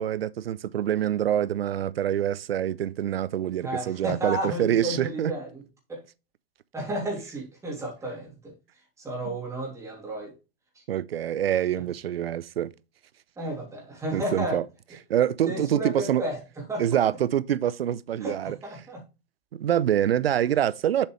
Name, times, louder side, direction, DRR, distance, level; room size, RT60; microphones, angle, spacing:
voice 1, 0.0-5.3 10.9-12.7 14.1-14.6 15.1-16.2 16.8-18.6 19.5-21.1, right 10 dB, 85° right, 0.6 m, -25 dB
voice 2, 3.6-5.6 5.9-6.0 6.7-8.5 9.0-10.3 10.7-10.8 11.7-11.8 13.4-14.6 15.4-16.8 18.2-19.0, right 1 dB, 10° right, 3.0 m, -33 dB
7.3 x 5.1 x 3.1 m
hypercardioid pair, 135°, 29 cm